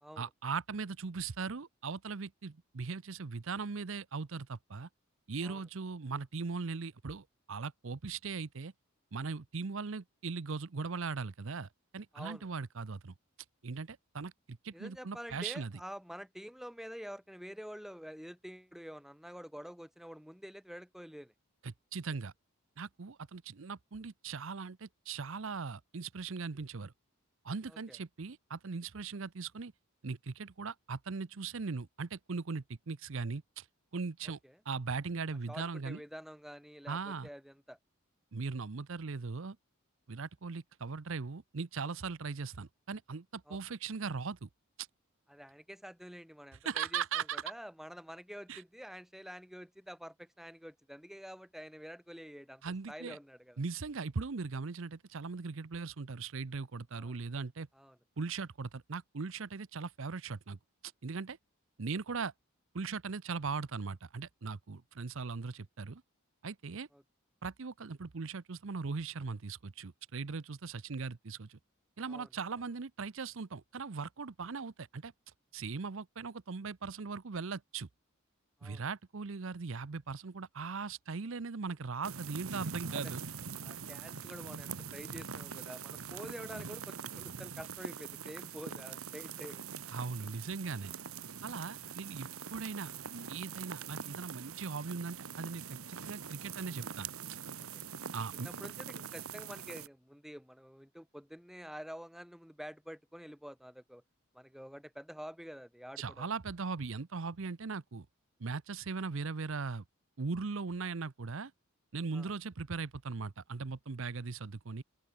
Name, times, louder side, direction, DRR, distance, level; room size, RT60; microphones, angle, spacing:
voice 1, 0.2-4.9 5.3-8.7 9.1-13.1 13.6-15.7 21.6-22.3 22.8-26.9 27.4-29.7 30.0-33.7 33.9-34.4 34.7-36.0 36.9-37.3 38.3-39.6 40.1-44.5 44.8-44.9 46.6-47.4 48.5-48.6 52.6-53.2 53.6-57.7 58.2-60.6 61.0-61.4 61.8-62.3 62.7-66.0 66.4-66.9 67.4-71.6 72.0-75.1 75.5-77.9 78.6-83.2 89.9-90.9 91.4-92.9 93.3-97.1 98.1-98.5 106.0-108.1 108.4-109.8 110.2-111.5 111.9-114.8, right 4 dB, 65° right, 0.7 m, -39 dB
voice 2, 12.1-12.5 14.7-21.3 27.7-28.0 34.2-34.6 35.5-37.8 43.5-43.6 45.3-52.6 52.9-53.6 56.9-57.2 57.7-58.0 66.9-67.0 72.1-72.3 78.6-78.8 82.9-83.2 83.6-89.6 98.3-104.0 104.3-106.3 112.1-112.3, equal, ahead, 3.8 m, -48 dB
sound 1, 82.0-99.9, right 6 dB, 80° right, 1.4 m, -44 dB
open air
head